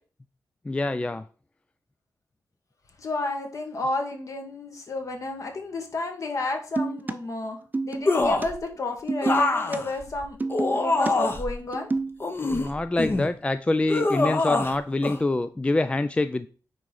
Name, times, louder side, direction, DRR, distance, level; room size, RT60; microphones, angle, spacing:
voice 1, 0.7-1.2 12.5-16.5, left 2 dB, 15° left, 12 dB, 0.3 m, -25 dB
voice 2, 3.0-7.6 7.8-10.4 10.7-11.9, left 2 dB, 50° left, 4 dB, 1.7 m, -31 dB
sound 1, 6.8-7.1 7.7-8.1 8.4-8.5 9.1-9.8 10.4-11.1 11.6-12.2, right 3 dB, 25° right, 0.6 m, -28 dB
sound 2, 8.1-8.6 9.2-11.5 12.2-13.3 13.9-14.8 15.0-15.2, left 2 dB, 35° left, 0.9 m, -24 dB
9.4 x 3.8 x 4.8 m, 0.39 s
wide cardioid pair, 120°, 7 cm